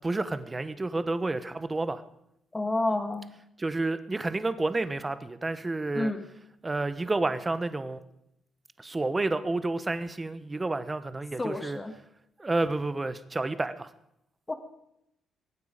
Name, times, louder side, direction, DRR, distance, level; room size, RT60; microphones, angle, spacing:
voice 1, 0.0-2.0 3.6-6.1 6.6-8.0 8.8-11.8 12.4-13.9, right 2 dB, 20° right, 13 dB, 1.2 m, -30 dB
voice 2, 2.5-3.3 5.9-6.3 11.4-11.9 14.5-14.6, left 2 dB, 20° left, 7 dB, 1.7 m, -29 dB
22.5 x 9.2 x 5.2 m, 0.78 s
cardioid pair, 90°, 0 cm